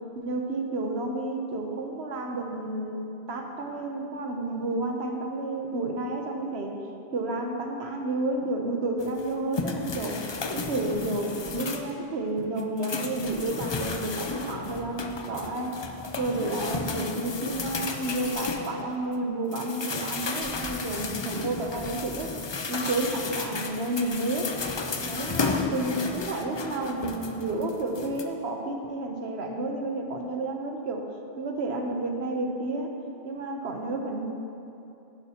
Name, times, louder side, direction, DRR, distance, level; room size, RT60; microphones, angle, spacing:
voice 1, 0.1-6.7 7.1-10.2 10.5-15.7 16.2-22.3 22.7-24.5 25.0-31.0 31.4-32.9 33.2-34.3, right 2 dB, 80° right, 3 dB, 1.2 m, -31 dB
sound 1, 9.0-12.0 12.4-19.1 19.5-28.2, left 4 dB, 40° left, 0.4 m, -33 dB
11.0 x 10.5 x 2.9 m, 2.8 s
omnidirectional pair, 1.1 m